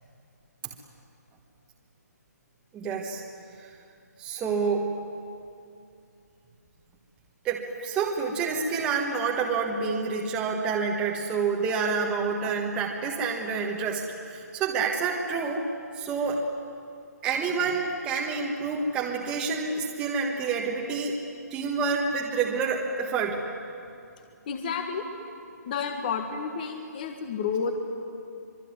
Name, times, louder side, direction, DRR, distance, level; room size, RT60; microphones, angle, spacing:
voice 1, 2.7-3.2 4.2-4.9 7.4-14.0 14.3-15.6 16.0-16.4 17.2-21.2 21.5-23.4, right 5 dB, 10° right, -1 dB, 1.5 m, -28 dB
voice 2, 24.5-25.1 25.6-27.8, left 5 dB, 30° left, 5 dB, 1.6 m, -30 dB
25.5 x 23.0 x 9.7 m, 2.6 s
hypercardioid pair, 165°, 9 cm